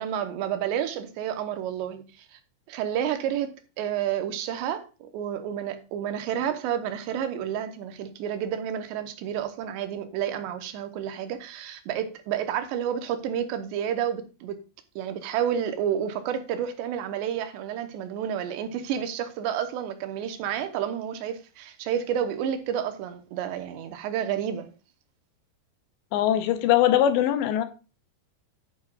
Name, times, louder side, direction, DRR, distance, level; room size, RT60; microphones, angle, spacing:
voice 1, 0.0-2.4 2.7-14.6 15.0-24.7, right 9 dB, 80° right, 3.1 m, -30 dB
voice 2, 26.1-27.6, left 11 dB, 80° left, 3.0 m, -21 dB
10.5 x 9.2 x 2.4 m
omnidirectional pair, 5.1 m